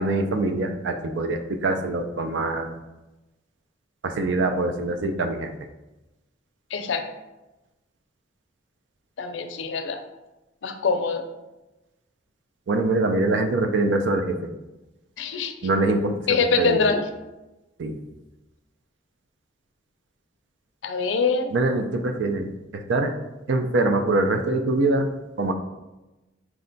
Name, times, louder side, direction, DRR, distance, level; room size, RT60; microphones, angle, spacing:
voice 1, 0.0-2.7 4.0-5.5 12.7-14.4 15.6-16.1 16.6-16.9 17.8-18.0 21.5-23.2 23.5-25.1 25.4-25.5, right 2 dB, 80° right, 6 dB, 0.4 m, -24 dB
voice 2, 6.7-7.0 9.2-10.0 10.6-11.2 15.2-15.5 16.3-17.0 20.8-21.5, left 4 dB, 85° left, 7 dB, 0.4 m, -24 dB
4.6 x 2.2 x 3.9 m, 1.0 s
head